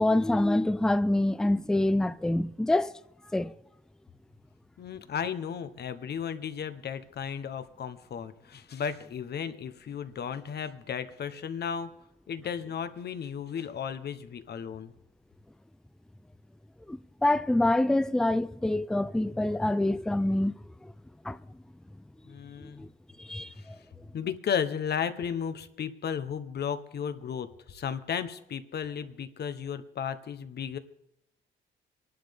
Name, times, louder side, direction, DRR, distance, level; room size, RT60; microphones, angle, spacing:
voice 1, 0.0-2.9 3.3-3.5 16.9-20.5 20.8-20.9 21.2-21.4 22.6-22.9 23.2-23.8, left 1 dB, 5° left, 0.4 m, -26 dB
voice 2, 4.8-11.9 12.3-14.9 22.3-22.8 23.6-23.7 24.1-30.8, left 7 dB, 55° left, 1.1 m, -34 dB
23.5 x 11.5 x 3.6 m
cardioid pair, 90°, 20 cm